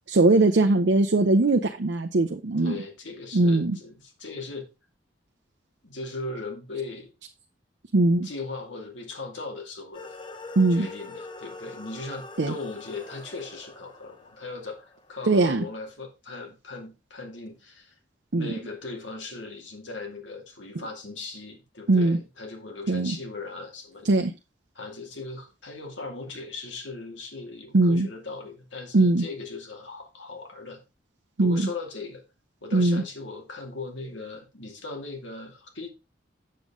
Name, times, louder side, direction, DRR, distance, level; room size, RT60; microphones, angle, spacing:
voice 1, 0.1-2.8 3.3-3.8 7.9-8.3 10.6-10.9 12.4-12.5 15.3-15.6 18.3-18.5 21.9-22.2 22.9-23.2 24.0-24.3 27.7-28.1 28.9-29.2 31.4-31.7 32.7-33.0, right 2 dB, 65° right, 4 dB, 0.7 m, -20 dB
voice 2, 2.6-4.7 5.8-7.1 8.2-10.1 10.7-17.9 18.3-24.1 24.7-30.8 31.4-32.2 32.6-35.9, left 3 dB, 80° left, 2 dB, 2.5 m, -38 dB
sound 1, 9.9-15.4, left 3 dB, 25° left, 0.7 m, -43 dB
7.7 x 7.3 x 3.7 m, 0.27 s
head